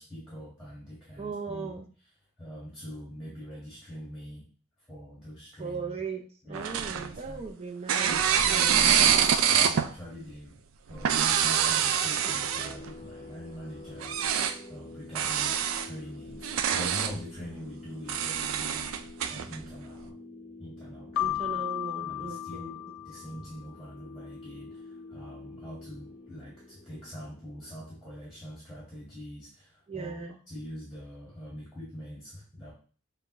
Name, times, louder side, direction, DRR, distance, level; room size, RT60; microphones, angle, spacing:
voice 1, 0.0-1.8 2.4-4.4 4.9-6.0 6.4-7.4 8.0-8.4 8.9-10.6 10.9-14.2 14.7-19.0 19.3-20.2 20.6-21.6 22.0-22.8 23.0-32.7, equal, ahead, -7 dB, 1.6 m, -44 dB
voice 2, 1.2-1.9 5.6-8.9 21.2-22.7 29.9-30.4, right 5 dB, 30° right, 3 dB, 0.5 m, -38 dB
sound 1, 6.5-7.5 7.9-9.9 10.9-12.9 14.0-14.6 15.1-15.9 16.3-17.1 18.1-19.6, right 8 dB, 85° right, 0.4 m, -25 dB
sound 2, 12.1-28.4, left 2 dB, 30° left, 0.7 m, -47 dB
Keyboard (musical), 21.2-23.7, left 12 dB, 90° left, 0.4 m, -34 dB
6.7 x 2.5 x 3.0 m, 0.41 s
head